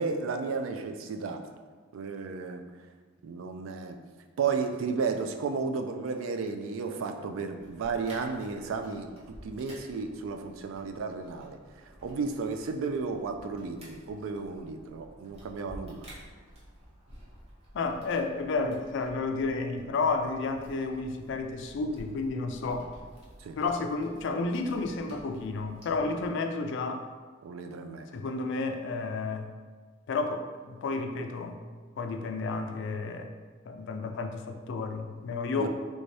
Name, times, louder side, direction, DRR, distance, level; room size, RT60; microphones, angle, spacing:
voice 1, 0.0-1.4 1.9-2.6 3.2-4.0 4.4-9.1 9.4-11.6 12.0-16.0 23.4-23.6 27.4-28.1 35.6-35.7, right 4 dB, 85° right, 6 dB, 0.3 m, -33 dB
sound 1, 7.6-26.3, equal, 30° right, 0.9 m, -52 dB
voice 2, 17.7-22.9 23.6-27.1 28.1-29.5 30.1-31.6 32.0-33.3 33.7-35.7, left 3 dB, 65° left, 6 dB, 0.3 m, -31 dB
3.4 x 2.7 x 3.2 m, 1.5 s
head